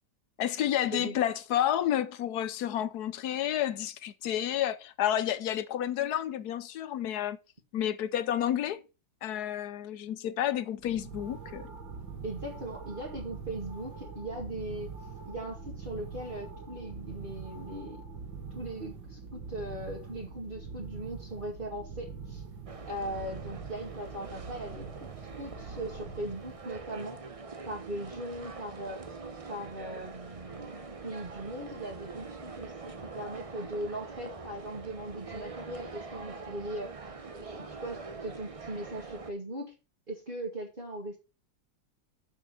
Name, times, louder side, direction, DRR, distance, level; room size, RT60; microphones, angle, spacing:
voice 1, 0.4-7.4 7.7-8.8 9.2-11.6, left 11 dB, 65° left, 1.1 m, -30 dB
sound 1, 10.8-26.8, right 5 dB, 90° right, 2.3 m, -44 dB
voice 2, 12.2-14.9 15.2-18.0 18.5-22.4 22.8-27.2 27.7-29.0 29.5-37.0 37.3-39.7 40.1-41.2, right 1 dB, 25° right, 2.1 m, -39 dB
sound 2, 22.7-39.3, right 4 dB, 45° right, 0.4 m, -44 dB
6.7 x 6.2 x 6.9 m
omnidirectional pair, 2.0 m